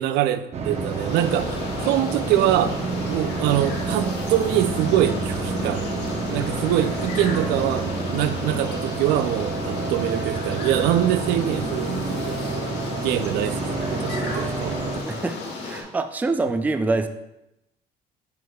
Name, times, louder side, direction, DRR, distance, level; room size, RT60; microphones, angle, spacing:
voice 1, 0.0-2.8 3.1-6.0 6.3-12.7 13.0-15.2, right 12 dB, 85° right, 12 dB, 0.4 m, -24 dB
sound 1, 0.5-15.0, right 4 dB, 40° right, 0.8 m, -29 dB
sound 2, 0.7-15.8, left 3 dB, 90° left, 1.4 m, -33 dB
voice 2, 15.0-17.1, right 3 dB, 10° right, 8 dB, 0.3 m, -25 dB
6.5 x 6.4 x 2.3 m, 0.88 s
cardioid pair, 110°, 17 cm